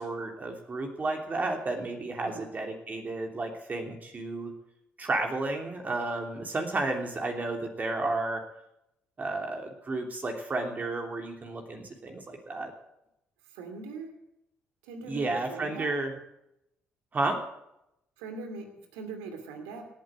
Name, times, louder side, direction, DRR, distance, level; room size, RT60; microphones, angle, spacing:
voice 1, 0.0-4.5 5.0-8.4 9.2-12.7 15.0-16.2 17.1-17.4, right 2 dB, 40° right, 3 dB, 3.2 m, -32 dB
voice 2, 13.5-14.1 14.8-15.9 18.2-19.9, right 4 dB, 85° right, 6 dB, 2.6 m, -41 dB
18.0 x 8.6 x 7.7 m, 0.83 s
hypercardioid pair, 55°, 4 cm